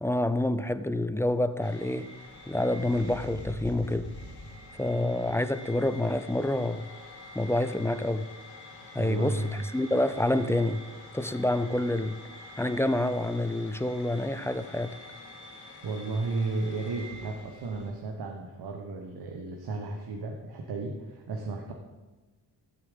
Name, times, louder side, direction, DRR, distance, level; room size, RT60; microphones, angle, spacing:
voice 1, 0.0-2.1 2.5-4.1 4.8-6.9 7.4-8.3 8.9-9.5 9.7-10.8 11.1-12.2 12.6-15.0, left 1 dB, 5° left, 13 dB, 0.4 m, -27 dB
sound 1, 1.6-17.9, left 1 dB, 75° left, 2.8 m, -46 dB
voice 2, 9.0-9.7 15.8-21.7, right 3 dB, 75° right, 2 dB, 1.4 m, -33 dB
15.5 x 7.1 x 5.3 m, 1.2 s
cardioid pair, 110°, 39 cm